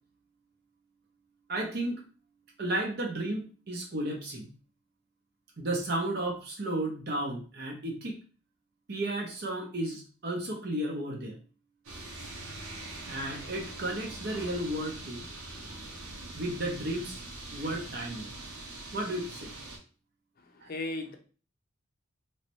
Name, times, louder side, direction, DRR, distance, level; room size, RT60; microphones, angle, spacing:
voice 1, 1.5-2.0 2.6-4.5 5.6-8.2 8.9-11.4 13.1-15.2 16.3-17.2 17.5-18.3 18.9-19.5 20.6-20.7, right 1 dB, 45° right, 0 dB, 0.7 m, -33 dB
sound 1, 11.8-19.8, right 2 dB, 85° right, 1.0 m, -43 dB
voice 2, 20.4-21.2, left 2 dB, 45° left, 4 dB, 0.6 m, -37 dB
3.1 x 3.1 x 2.9 m, 0.39 s
head